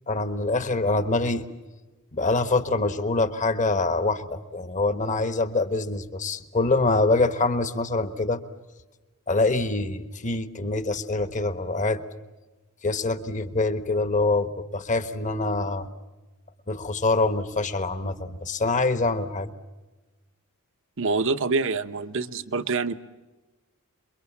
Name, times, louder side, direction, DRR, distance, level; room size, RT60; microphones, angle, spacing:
voice 1, 0.1-1.5 2.1-8.4 9.3-12.0 12.8-15.9 16.7-19.5, left 3 dB, 35° left, 10 dB, 1.3 m, -25 dB
voice 2, 21.0-22.9, right 4 dB, 60° right, 10 dB, 1.0 m, -26 dB
28.0 x 23.0 x 7.3 m, 1.2 s
head